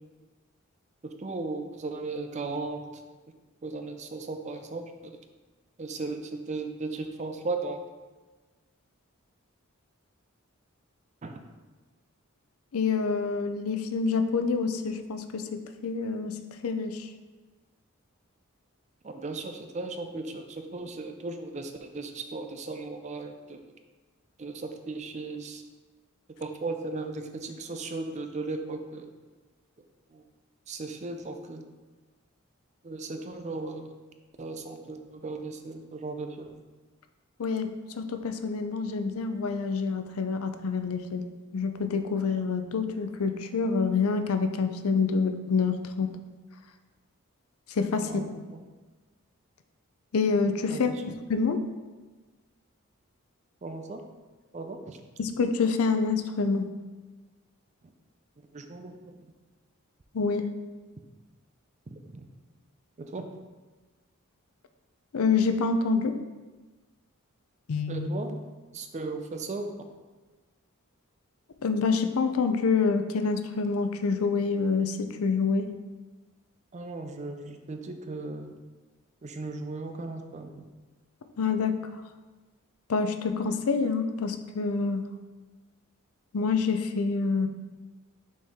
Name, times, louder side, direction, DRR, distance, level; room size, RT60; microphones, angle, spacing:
voice 1, 1.0-2.9 3.6-5.2 5.8-7.8 11.2-11.4 19.0-23.6 24.4-25.6 26.4-29.1 30.1-30.2 30.7-31.6 32.8-33.9 34.4-36.6 48.0-48.6 50.7-51.0 53.6-54.0 54.5-55.0 58.5-59.1 61.9-62.3 63.0-63.3 67.9-68.4 68.7-69.7 76.7-78.6 79.2-80.7, right 3 dB, 30° right, 6 dB, 0.5 m, -36 dB
voice 2, 12.7-16.4 16.6-17.1 37.4-37.7 38.0-41.2 41.5-46.1 47.7-48.4 50.1-51.6 55.2-56.7 60.1-60.5 65.1-66.1 67.7-68.1 71.6-75.7 81.4-81.8 82.9-85.0 86.3-87.5, left 4 dB, 80° left, 8 dB, 0.5 m, -27 dB
6.2 x 4.4 x 3.6 m, 1.3 s
head